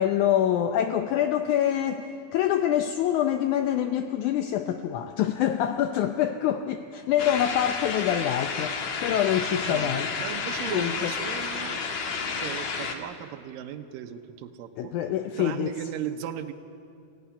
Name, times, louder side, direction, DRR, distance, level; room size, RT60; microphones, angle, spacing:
voice 1, 0.0-10.1 10.6-11.1 14.8-15.8, left 10 dB, 80° left, 7 dB, 1.8 m, -26 dB
sound 1, 7.2-13.0, left 5 dB, 60° left, 2.5 m, -31 dB
voice 2, 9.7-11.8 12.4-14.9 15.4-16.5, right 10 dB, 75° right, 5 dB, 2.4 m, -37 dB
22.5 x 16.5 x 10.0 m, 2.6 s
omnidirectional pair, 4.2 m